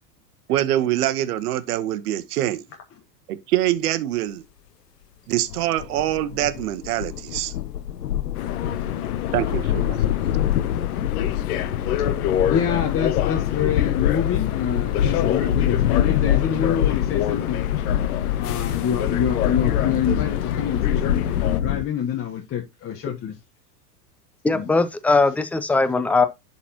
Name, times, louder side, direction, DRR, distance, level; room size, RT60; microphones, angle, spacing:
voice 1, 0.5-2.6 3.3-4.4 5.3-7.5 9.3-10.0, right 13 dB, 65° right, 1.1 m, -24 dB
sound 1, 5.5-21.8, left 10 dB, 90° left, 0.6 m, -25 dB
sound 2, 8.3-21.6, left 11 dB, 65° left, 1.0 m, -28 dB
voice 2, 12.5-17.6 18.4-23.4 24.5-24.7, left 8 dB, 30° left, 1.1 m, -26 dB
voice 3, 24.4-26.3, left 3 dB, 5° left, 0.4 m, -19 dB
11.0 x 4.2 x 2.9 m
hypercardioid pair, 95°, 48 cm